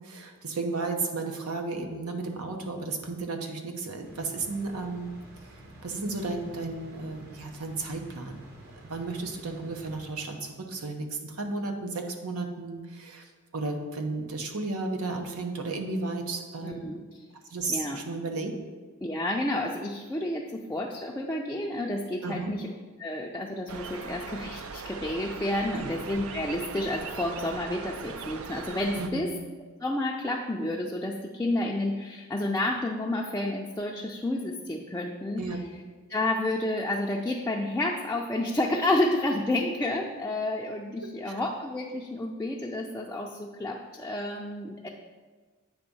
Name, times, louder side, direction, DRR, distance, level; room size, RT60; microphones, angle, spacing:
voice 1, 0.0-5.1 5.4-5.6 5.8-8.5 8.8-16.9 17.5-18.5 22.2-22.5 25.7-26.0 28.9-29.2 35.4-35.7 41.3-41.4, right 3 dB, 85° right, 4 dB, 0.9 m, -33 dB
sound 1, 4.0-10.7, right 1 dB, 50° right, 1.1 m, -50 dB
voice 2, 16.6-17.0 17.7-18.0 19.0-22.7 23.0-29.3 29.8-35.4 36.1-44.9, left 1 dB, 10° left, -1 dB, 0.4 m, -30 dB
sound 2, 23.7-29.1, right 5 dB, 65° right, 0.5 m, -39 dB
8.9 x 3.5 x 5.4 m, 1.4 s
head